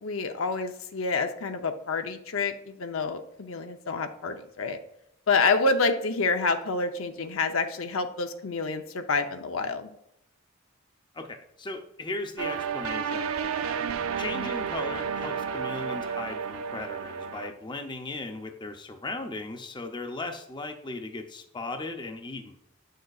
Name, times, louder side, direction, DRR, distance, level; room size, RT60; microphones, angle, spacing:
voice 1, 0.0-4.8 5.3-9.9, left 4 dB, 70° left, 7 dB, 0.7 m, -28 dB
voice 2, 11.1-13.8 14.2-22.6, left 2 dB, 20° left, 5 dB, 0.6 m, -37 dB
sound 1, 12.4-17.5, right 6 dB, 85° right, 0.5 m, -31 dB
8.7 x 6.5 x 2.4 m, 0.79 s
head